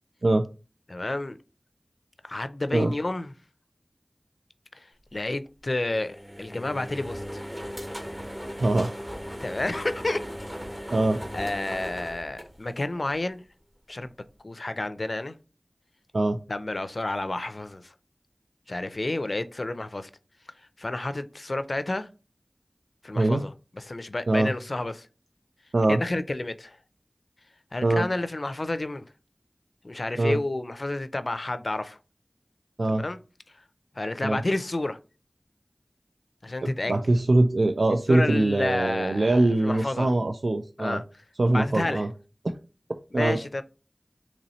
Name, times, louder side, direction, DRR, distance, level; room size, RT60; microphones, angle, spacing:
voice 1, 0.9-1.4 2.2-3.3 4.8-4.9 5.1-7.5 9.4-10.2 11.3-13.4 13.9-14.1 14.4-15.3 16.5-17.9 18.7-20.1 20.8-22.1 23.0-25.1 25.9-26.8 27.7-29.1 29.8-32.0 32.9-33.2 34.0-35.0 36.4-36.9 38.1-40.1 40.8-41.0 41.4-42.1 43.1-43.6, left 2 dB, 60° left, 0.4 m, -30 dB
sound 1, 5.8-13.1, equal, 10° right, 0.8 m, -38 dB
voice 2, 8.6-9.1 10.9-11.2 16.1-16.4 23.2-23.4 24.3-24.5 25.7-26.0 27.8-28.0 30.2-30.4 32.8-33.0 34.2-34.4 36.6-41.0 41.4-42.1 43.1-43.4, right 2 dB, 85° right, 0.3 m, -23 dB
4.1 x 3.0 x 2.9 m
wide cardioid pair, 45°, 0 cm